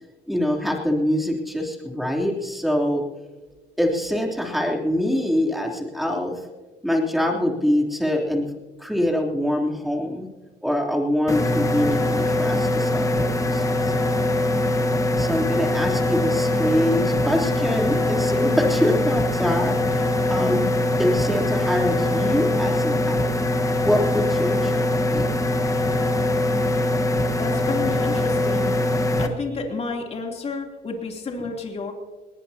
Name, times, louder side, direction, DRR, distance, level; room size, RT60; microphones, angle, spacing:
voice 1, 0.3-3.0 3.8-6.4 6.8-8.5 8.8-10.3 10.6-14.1 15.2-20.7 21.0-23.3 23.8-25.3, left 1 dB, ahead, -1 dB, 3.2 m, -24 dB
sound 1, 11.3-29.3, left 1 dB, 20° left, 1.3 m, -22 dB
voice 2, 27.4-28.8 29.2-31.9, left 4 dB, 40° left, 1 dB, 3.1 m, -30 dB
19.5 x 19.0 x 2.9 m, 1.3 s
cardioid pair, 110°, 17 cm